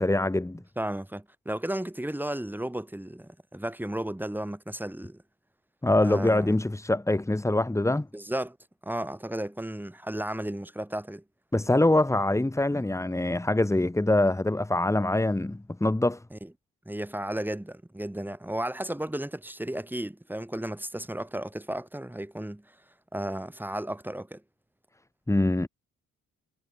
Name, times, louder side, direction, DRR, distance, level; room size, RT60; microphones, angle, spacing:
voice 1, 0.0-0.6 5.8-8.1 11.5-16.2 25.3-25.7, left 1 dB, 10° left, 2.3 m, -24 dB
voice 2, 0.8-5.2 6.0-6.6 8.1-8.6 8.8-11.2 16.3-16.5 16.9-22.7 23.1-24.4, right 1 dB, 5° right, 6.9 m, -34 dB
cardioid pair, 90°, 30 cm